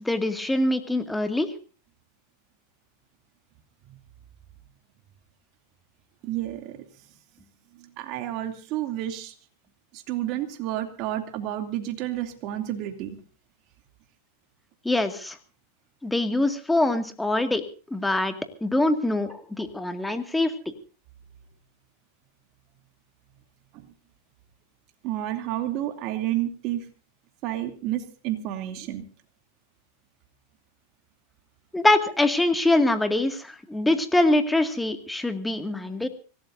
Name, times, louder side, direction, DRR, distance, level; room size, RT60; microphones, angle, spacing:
voice 1, 0.0-1.5 14.8-15.4 16.0-18.3 18.6-20.7 31.7-36.1, left 2 dB, 5° left, 7 dB, 2.1 m, -24 dB
voice 2, 6.2-6.8 7.8-9.3 9.9-13.2 23.7-23.9 25.0-26.9 27.4-29.1, right 13 dB, 50° right, 6 dB, 2.8 m, -30 dB
25.5 x 17.0 x 2.7 m, 0.38 s
hypercardioid pair, 120°, 0 cm